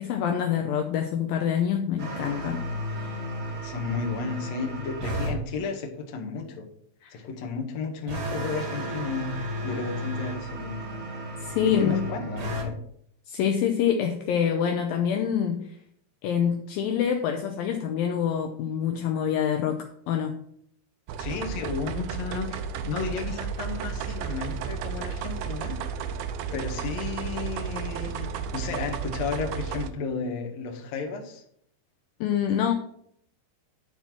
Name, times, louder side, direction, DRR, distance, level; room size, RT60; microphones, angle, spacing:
voice 1, 0.0-3.3 7.0-7.2 11.4-12.1 13.3-15.7 16.2-20.4 32.2-32.7, left 8 dB, 75° left, 4 dB, 2.3 m, -26 dB
sound 1, 2.0-5.4 8.1-12.7, equal, 45° right, 1.8 m, -33 dB
voice 2, 3.6-6.7 7.1-10.9 11.7-12.8 21.2-26.0 26.5-31.4, left 5 dB, 55° left, 1 dB, 2.2 m, -33 dB
sound 2, 21.1-29.9, right 7 dB, 80° right, 2.5 m, -33 dB
11.0 x 4.4 x 5.9 m, 0.68 s
omnidirectional pair, 4.5 m